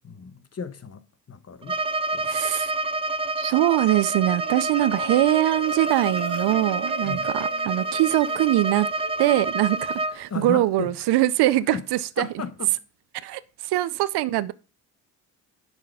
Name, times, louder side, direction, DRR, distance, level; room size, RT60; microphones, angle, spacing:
voice 1, 0.0-1.8 2.1-2.3 7.0-7.3 10.3-10.9 11.7-11.9 12.2-12.8, left 5 dB, 35° left, 1.2 m, -34 dB
Bowed string instrument, 1.6-10.2, right 2 dB, 15° right, 0.4 m, -28 dB
voice 2, 2.2-2.7 3.4-8.9 9.2-12.3 13.2-14.5, right 15 dB, 70° right, 0.6 m, -23 dB
Marimba xylophone, 4.1-10.7, right 6 dB, 40° right, 1.4 m, -39 dB
10.5 x 4.0 x 5.4 m
hypercardioid pair, 50°, 42 cm